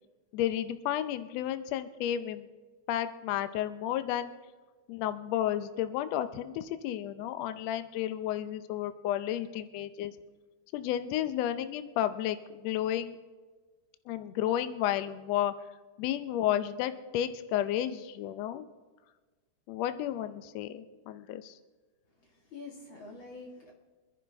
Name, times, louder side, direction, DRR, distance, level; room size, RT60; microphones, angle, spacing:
voice 1, 0.3-2.5 2.9-4.3 4.9-10.1 10.7-13.2 14.1-15.5 16.0-18.6 19.7-21.5, left 11 dB, 85° left, 11 dB, 1.5 m, -32 dB
voice 2, 22.2-23.7, left 3 dB, 40° left, 0 dB, 2.2 m, -46 dB
25.5 x 11.0 x 3.5 m, 1.3 s
omnidirectional pair, 3.8 m